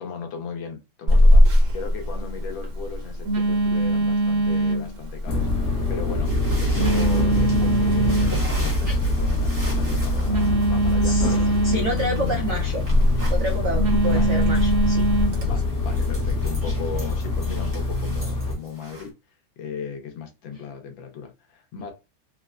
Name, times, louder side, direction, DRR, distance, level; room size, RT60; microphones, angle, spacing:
voice 1, 0.0-11.2 11.7-12.4 13.8-14.4 15.4-19.1 19.6-21.9, left 6 dB, 75° left, 1.5 m, -36 dB
Telephone, 1.1-15.4, equal, 55° right, 1.0 m, -22 dB
sound 1, 5.3-18.5, left 2 dB, 50° left, 1.0 m, -24 dB
sound 2, 6.2-19.1, right 1 dB, 15° right, 0.7 m, -41 dB
voice 2, 11.0-11.3 11.6-12.8 13.3-15.1 15.5-15.6, right 2 dB, 75° right, 0.7 m, -28 dB
4.1 x 2.1 x 2.3 m
omnidirectional pair, 2.2 m